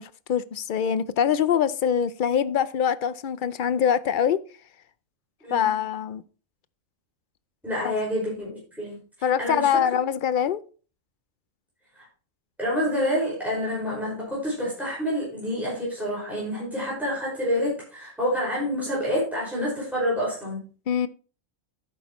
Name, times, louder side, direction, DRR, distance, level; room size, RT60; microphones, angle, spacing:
voice 1, 0.0-4.4 5.5-6.2 7.8-8.0 9.2-10.6 20.9-21.1, left 8 dB, 60° left, 0.5 m, -24 dB
voice 2, 7.6-9.0 9.4-9.7 12.0-12.1 12.6-20.6, equal, ahead, 5.3 m, -28 dB
11.0 x 8.5 x 3.0 m
omnidirectional pair, 1.4 m